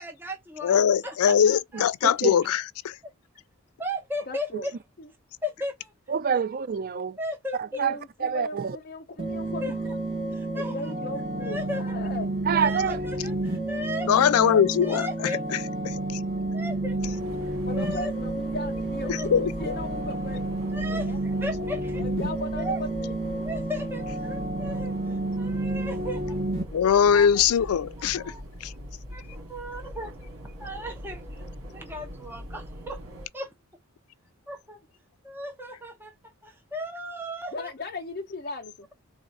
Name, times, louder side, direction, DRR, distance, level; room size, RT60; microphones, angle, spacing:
voice 1, 0.0-1.8 3.8-4.7 5.4-5.9 7.2-7.8 9.6-9.8 10.3-10.7 11.4-12.0 12.5-15.4 16.5-18.2 19.0-19.3 20.7-22.0 22.6-22.8 23.4-26.4 26.8-27.4 28.2-28.4 29.1-30.1 30.4-33.0 33.3-33.5 34.5-34.8 35.2-37.7, left 1 dB, 10° right, 0.9 m, -36 dB
voice 2, 0.6-3.0 14.1-15.1 15.9-16.0 19.1-19.7 26.7-28.3 28.6-28.7, left 8 dB, 75° left, 0.3 m, -21 dB
voice 3, 2.0-2.3 4.5-4.6 6.1-7.2 7.6-8.8 12.5-13.0, right 7 dB, 40° right, 0.3 m, -27 dB
voice 4, 4.3-4.7 5.0-5.1 7.8-9.8 10.5-12.3 17.6-21.3 21.6-21.7 22.0-23.4 37.5-38.9, left 2 dB, 40° left, 0.7 m, -37 dB
sound 1, 9.2-26.6, right 2 dB, 25° right, 1.3 m, -30 dB
sound 2, 17.0-33.3, equal, 70° right, 2.3 m, -41 dB
4.0 x 2.5 x 4.6 m
head